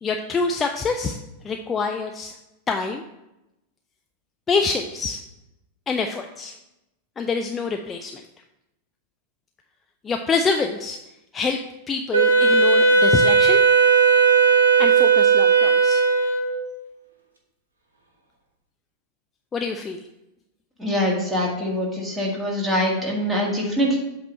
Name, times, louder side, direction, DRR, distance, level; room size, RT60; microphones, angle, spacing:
voice 1, 0.0-1.2 1.4-2.3 2.7-3.0 4.5-5.2 5.9-6.5 7.2-8.1 10.0-11.0 11.3-11.6 11.9-13.6 14.8-16.0 19.5-20.0, left 4 dB, 20° left, 4 dB, 0.4 m, -26 dB
Wind instrument woodwind instrument, 12.1-16.7, right 5 dB, 75° right, 1.2 m, -16 dB
voice 2, 20.8-24.0, equal, 10° right, -2 dB, 1.8 m, -23 dB
8.1 x 3.0 x 6.2 m, 0.91 s
figure-of-eight pair, 90°, 0 cm